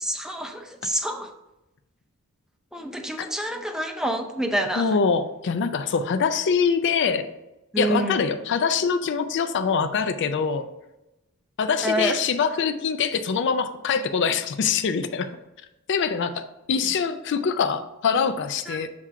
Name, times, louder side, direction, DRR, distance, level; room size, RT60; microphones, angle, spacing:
voice 1, 0.1-1.3 2.7-4.8 7.7-8.2 11.8-12.1 18.7-18.8, right 1 dB, 5° right, 4 dB, 0.5 m, -27 dB
voice 2, 4.8-7.3 7.8-10.6 11.6-15.3 15.9-18.9, left 6 dB, 55° left, 9 dB, 0.4 m, -24 dB
7.3 x 2.4 x 5.4 m, 0.95 s
head